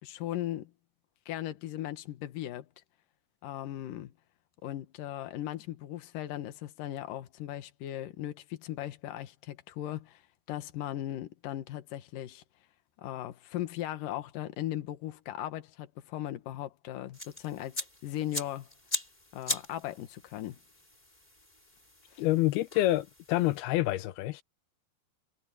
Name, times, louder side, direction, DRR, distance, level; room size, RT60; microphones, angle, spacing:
voice 1, 0.0-0.7 1.3-2.7 3.4-4.1 4.6-10.2 10.5-12.4 13.0-18.7 19.3-20.6 22.1-22.2, left 13 dB, 65° left, 2.9 m, -38 dB
sound 1, 17.1-23.6, left 1 dB, 10° left, 5.0 m, -40 dB
voice 2, 22.2-24.4, left 16 dB, 90° left, 2.8 m, -27 dB
omnidirectional pair, 4.3 m